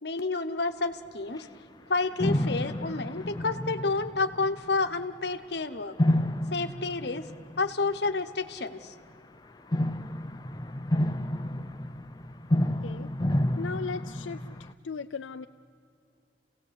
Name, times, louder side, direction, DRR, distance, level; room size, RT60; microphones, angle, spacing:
voice 1, 0.0-1.5 1.9-6.0 6.5-7.3 7.6-8.9, left 3 dB, 60° left, 8 dB, 1.0 m, -30 dB
sound 1, 1.4-1.5 2.2-5.0 6.0-8.1 9.7-14.7, left 1 dB, 20° left, 0.5 m, -30 dB
voice 2, 13.6-15.5, left 5 dB, 85° left, 7 dB, 0.5 m, -37 dB
29.0 x 17.0 x 8.1 m, 2.4 s
head